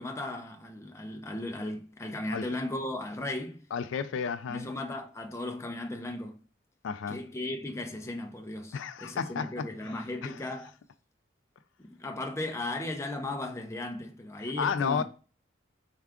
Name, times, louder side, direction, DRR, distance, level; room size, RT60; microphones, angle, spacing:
voice 1, 0.0-3.7 4.5-6.4 7.1-10.7 11.8-15.0, left 1 dB, 15° left, 0.5 m, -36 dB
voice 2, 3.7-4.7 6.8-7.2 8.7-10.4 14.6-15.0, left 6 dB, 80° left, 0.4 m, -32 dB
4.6 x 2.3 x 3.5 m
head